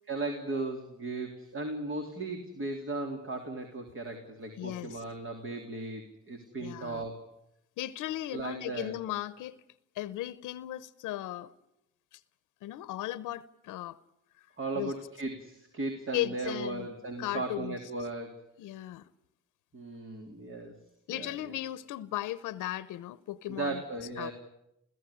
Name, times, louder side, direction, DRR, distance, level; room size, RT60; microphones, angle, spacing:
voice 1, 0.1-7.3 8.3-9.0 14.6-18.4 19.7-20.8 21.1-21.5 23.5-24.3, right 2 dB, 45° right, 3.4 m, -36 dB
voice 2, 4.6-5.0 6.6-7.1 7.8-9.6 9.9-11.5 12.1-12.2 12.6-14.0 14.7-14.9 16.1-16.9 17.2-17.8 18.6-19.1 21.1-23.8 24.2-24.3, left 14 dB, 90° left, 0.9 m, -36 dB
28.5 x 16.0 x 10.0 m
cardioid pair, 90°, 30 cm